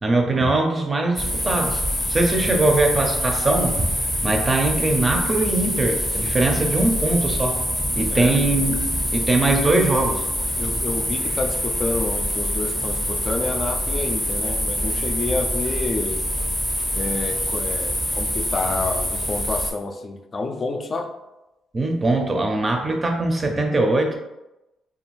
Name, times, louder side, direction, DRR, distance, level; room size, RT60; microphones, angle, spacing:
voice 1, 0.0-1.8 2.1-3.9 4.2-7.6 8.0-8.8 9.1-10.3 21.7-24.2, right 2 dB, 30° right, 3 dB, 0.5 m, -21 dB
sound 1, 1.2-19.7, equal, 10° left, 0.7 m, -25 dB
voice 2, 8.1-8.4 10.6-16.3 16.9-21.1, left 3 dB, 40° left, 5 dB, 0.3 m, -29 dB
2.5 x 2.3 x 3.0 m, 0.95 s
cardioid pair, 90°, 0 cm